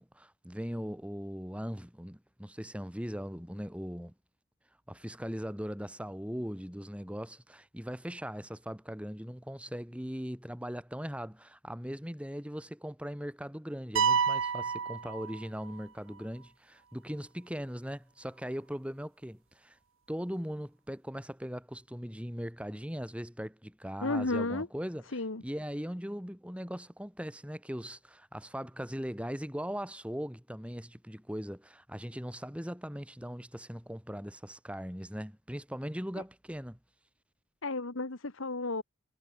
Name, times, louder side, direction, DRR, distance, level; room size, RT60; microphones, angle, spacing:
voice 1, 0.0-4.1 4.9-19.8 20.1-36.8, equal, 5° right, 2.6 m, -39 dB
sound 1, 14.0-15.9, right 6 dB, 65° right, 0.7 m, -29 dB
voice 2, 24.0-24.7 25.1-25.4 37.6-38.8, left 2 dB, 70° left, 1.5 m, -32 dB
head